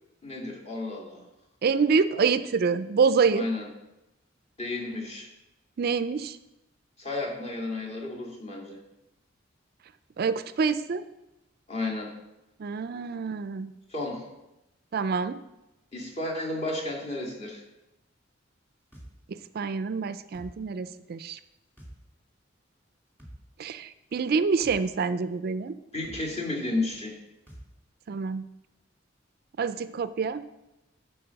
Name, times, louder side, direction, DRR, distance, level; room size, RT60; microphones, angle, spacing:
voice 1, 0.2-1.2 3.3-3.7 4.6-5.3 7.0-8.8 11.7-12.1 13.9-14.2 15.9-17.6 25.9-27.2, left 2 dB, 35° left, -2 dB, 2.3 m, -32 dB
voice 2, 1.6-3.5 5.8-6.4 10.2-11.0 12.6-13.7 14.9-15.4 19.3-21.4 23.6-25.8 28.1-28.4 29.6-30.4, right 5 dB, 55° right, 13 dB, 0.4 m, -26 dB
sound 1, 18.9-19.1 20.3-20.5 21.8-22.0 23.2-23.4 24.6-24.8 26.0-26.2 27.5-27.7, right 1 dB, 10° left, 2.5 m, -45 dB
11.0 x 4.2 x 6.9 m, 0.95 s
head